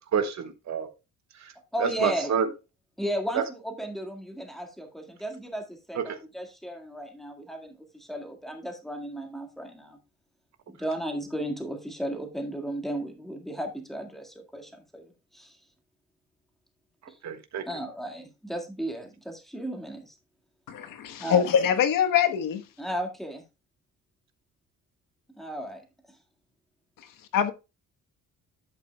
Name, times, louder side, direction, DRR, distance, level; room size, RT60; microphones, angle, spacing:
voice 1, 0.1-0.9 1.4-1.5 1.8-2.5 3.3-3.4 5.9-6.0 17.2-17.6, right 7 dB, 55° right, 1.4 m, -27 dB
voice 2, 1.7-2.3 3.0-10.0 10.8-15.6 17.1-17.2 17.7-20.1 21.2-21.4 22.8-23.4 25.4-25.8, right 1 dB, ahead, 1.8 m, -35 dB
voice 3, 20.7-22.6 27.3-27.5, left 8 dB, 75° left, 1.3 m, -23 dB
11.0 x 8.4 x 2.2 m
cardioid pair, 160°, 34 cm